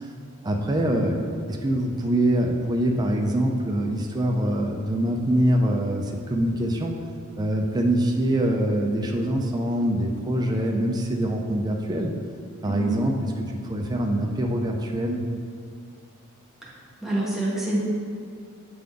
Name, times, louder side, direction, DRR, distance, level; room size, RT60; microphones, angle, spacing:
voice 1, 0.4-1.2 1.5-6.9 7.4-12.1 12.6-15.2, right 1 dB, 20° right, 1 dB, 0.4 m, -24 dB
voice 2, 12.6-13.0 17.0-17.8, right 1 dB, ahead, -6 dB, 1.2 m, -26 dB
8.5 x 3.8 x 3.5 m, 2.3 s
head